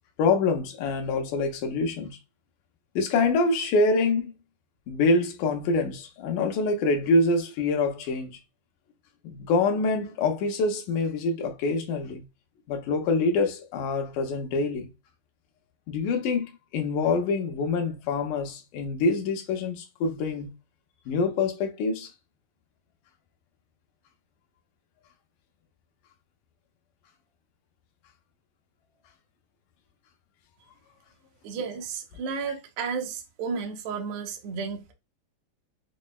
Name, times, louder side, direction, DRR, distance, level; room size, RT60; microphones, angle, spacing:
voice 1, 0.2-2.2 3.0-4.3 4.9-8.4 9.2-12.2 12.7-14.9 15.9-20.5 21.1-22.1, left 3 dB, 85° left, 2.3 m, -25 dB
voice 2, 31.4-34.9, right 5 dB, 80° right, 1.2 m, -33 dB
6.1 x 2.1 x 2.2 m
omnidirectional pair, 3.5 m